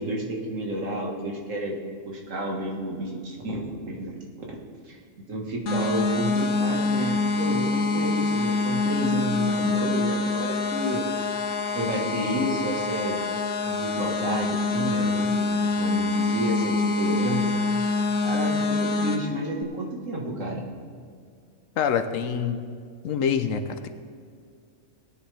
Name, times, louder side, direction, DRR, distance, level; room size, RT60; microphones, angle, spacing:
voice 1, 0.0-1.8 2.0-4.1 4.5-4.6 4.9-5.0 5.3-11.0 11.7-13.2 13.7-17.6 18.2-20.7, right 1 dB, 80° right, -1 dB, 2.1 m, -31 dB
sound 1, 5.7-19.2, left 3 dB, 70° left, 1.3 m, -25 dB
voice 2, 21.8-22.6 23.0-23.9, left 7 dB, 85° left, 9 dB, 1.2 m, -25 dB
18.0 x 9.8 x 3.4 m, 2.2 s
omnidirectional pair, 1.3 m